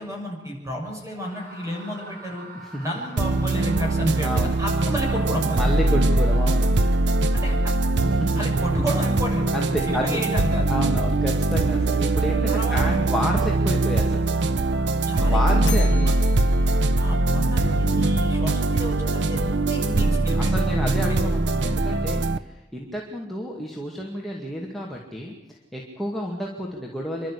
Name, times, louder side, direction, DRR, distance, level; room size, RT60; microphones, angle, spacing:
voice 1, 0.0-2.5 2.8-5.7 7.3-7.7 8.3-9.5 9.9-10.7 12.5-12.8 15.1-16.1 17.0-20.6 21.0-21.1, equal, 20° right, 0 dB, 6.8 m, -31 dB
Screaming, 1.1-7.4, right 1 dB, 55° right, 5.1 m, -45 dB
sound 1, 3.2-22.4, right 2 dB, 75° right, 0.8 m, -22 dB
voice 2, 4.2-4.5 5.6-6.7 8.0-8.4 9.5-10.2 10.7-14.2 15.1-16.1 19.8-27.3, equal, ahead, -2 dB, 2.2 m, -30 dB
Bell, 15.6-17.9, left 9 dB, 80° left, 2.4 m, -40 dB
27.5 x 12.0 x 8.4 m, 1.1 s
head